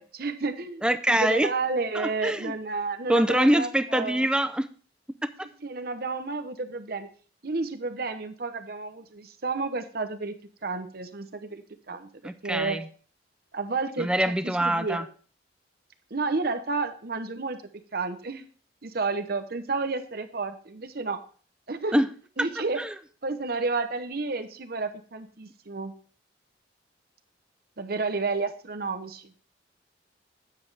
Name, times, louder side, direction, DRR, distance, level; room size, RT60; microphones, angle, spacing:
voice 1, 0.0-4.3 5.4-7.1 7.4-12.1 12.4-12.8 13.5-14.1 14.4-15.0 16.1-17.6 17.9-18.4 18.8-21.2 21.7-22.0 22.4-22.8 23.2-25.9 27.8-29.3, right 3 dB, 55° right, 8 dB, 0.9 m, -31 dB
voice 2, 0.8-1.5 1.9-2.5 3.1-4.7 12.2-12.8 14.0-15.1 21.9-22.1 22.8-22.9, right 1 dB, 5° right, 12 dB, 0.5 m, -24 dB
9.4 x 7.6 x 3.3 m, 0.41 s
head